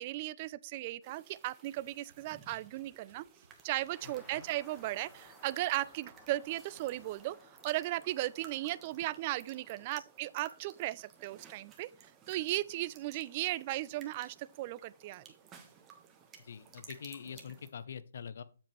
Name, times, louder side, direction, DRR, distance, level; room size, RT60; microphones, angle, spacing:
voice 1, 0.0-3.2 3.6-7.4 7.6-15.2, right 16 dB, 35° right, 0.4 m, -36 dB
sound 1, 1.0-17.7, right 6 dB, 20° right, 1.3 m, -58 dB
sound 2, 1.8-7.1, right 5 dB, 60° right, 1.2 m, -65 dB
sound 3, 3.9-9.9, equal, 5° left, 1.4 m, -59 dB
voice 2, 4.0-4.4 16.4-18.4, left 7 dB, 60° left, 0.7 m, -45 dB
7.7 x 7.3 x 3.2 m
figure-of-eight pair, 140°, 0 cm